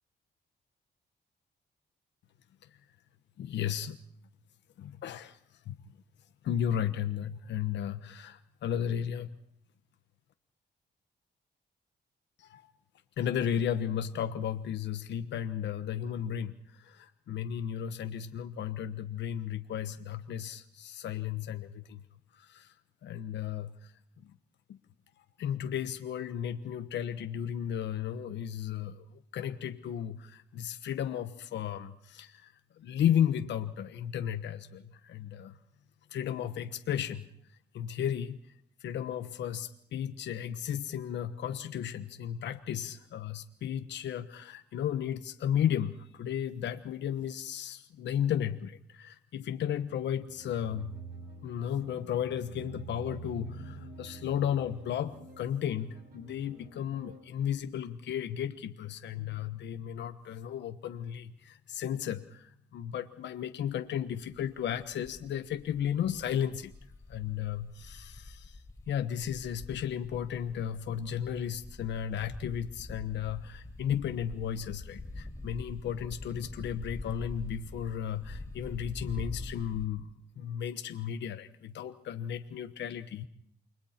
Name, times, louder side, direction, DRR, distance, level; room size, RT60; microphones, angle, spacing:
voice 1, 3.4-4.0 4.8-5.4 5.7-5.8 6.4-9.3 12.4-12.6 13.2-22.0 22.4-22.7 23.0-23.9 24.2-24.3 24.7-24.8 25.4-35.6 36.1-37.3 37.7-38.4 38.8-51.0 51.4-66.7 67.1-68.6 68.9-83.3, left 9 dB, 85° left, 8 dB, 1.2 m, -34 dB
sound 1, 49.9-57.2, right 5 dB, 55° right, 5.2 m, -48 dB
sound 2, 64.2-79.9, left 2 dB, 15° left, 3.9 m, -45 dB
29.0 x 22.5 x 4.4 m, 0.67 s
cardioid pair, 100°, 18 cm